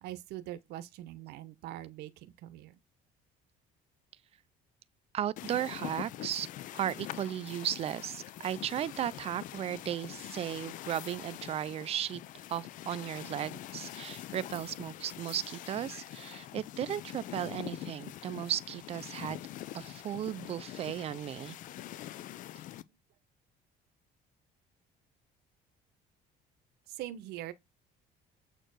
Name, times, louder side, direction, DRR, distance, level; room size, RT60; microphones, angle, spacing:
voice 1, 0.0-2.8 26.9-27.5, right 13 dB, 70° right, 1.0 m, -43 dB
voice 2, 5.1-6.5 6.7-12.2 12.5-19.4 19.7-21.6, right 11 dB, 35° right, 0.5 m, -35 dB
sound 1, 5.4-22.8, left 13 dB, 50° left, 0.5 m, -44 dB
7.8 x 4.5 x 6.2 m
cardioid pair, 165°, 17 cm